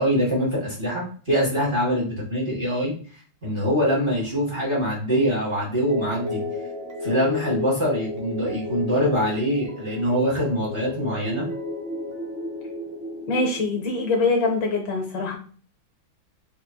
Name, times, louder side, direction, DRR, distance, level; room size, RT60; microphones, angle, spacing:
voice 1, 0.0-2.9 3.4-6.4 7.0-11.5, equal, 25° right, -5 dB, 1.7 m, -24 dB
sound 1, 5.9-14.2, left 2 dB, 55° right, 0.6 m, -33 dB
voice 2, 13.3-15.4, left 3 dB, 65° left, 2 dB, 1.4 m, -23 dB
4.3 x 4.1 x 2.2 m, 0.42 s
omnidirectional pair, 2.3 m